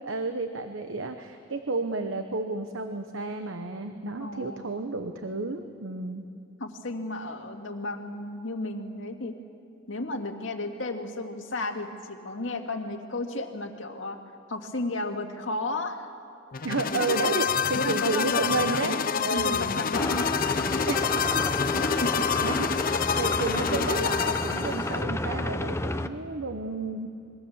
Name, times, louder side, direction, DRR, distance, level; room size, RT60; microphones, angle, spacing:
voice 1, 0.0-6.2 16.6-19.8 20.9-21.4 22.4-27.1, right 3 dB, 85° right, 7 dB, 1.1 m, -32 dB
voice 2, 4.2-4.6 6.6-9.4 9.9-14.2 14.5-16.0 17.2-17.4 17.7-20.3 21.8-22.3, left 2 dB, 75° left, 3 dB, 2.1 m, -33 dB
sound 1, 16.5-25.0, left 7 dB, 45° left, 0.6 m, -28 dB
sound 2, 19.9-26.1, left 1 dB, 15° left, 0.7 m, -30 dB
26.5 x 22.5 x 7.3 m, 2.6 s
head